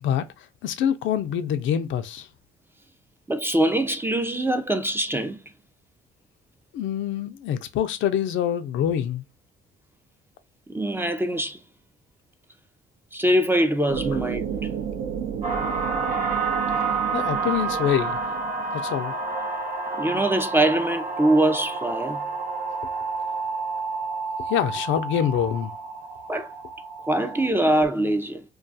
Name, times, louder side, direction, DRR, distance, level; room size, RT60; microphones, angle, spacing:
voice 1, 0.6-2.3 6.7-9.2 17.1-18.2 18.7-19.1 24.5-25.7, left 9 dB, 75° left, 0.4 m, -25 dB
voice 2, 3.3-5.4 10.7-11.6 13.1-14.7 20.0-22.2 26.3-26.5 27.1-28.4, right 1 dB, 10° right, 0.4 m, -23 dB
sound 1, 13.9-19.4, right 8 dB, 75° right, 0.5 m, -32 dB
sound 2, 15.4-27.5, right 4 dB, 45° right, 0.9 m, -29 dB
2.3 x 2.3 x 2.6 m
cardioid pair, 90°, 20 cm